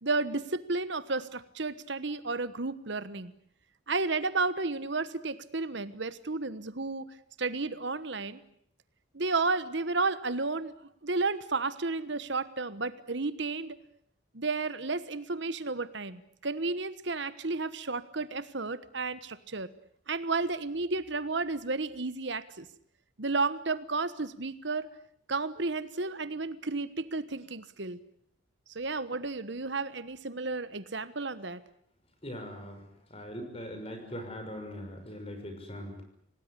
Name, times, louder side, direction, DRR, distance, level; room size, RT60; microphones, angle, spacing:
voice 1, 0.0-3.3 3.9-7.0 7.4-8.4 9.1-10.7 11.0-13.8 14.3-19.7 20.1-22.7 23.2-24.9 25.3-28.0 28.7-31.6, right 3 dB, 60° right, 14 dB, 1.2 m, -32 dB
voice 2, 32.2-32.8 33.1-36.0, equal, 30° left, 6 dB, 6.1 m, -41 dB
27.0 x 18.5 x 9.9 m, 0.68 s
head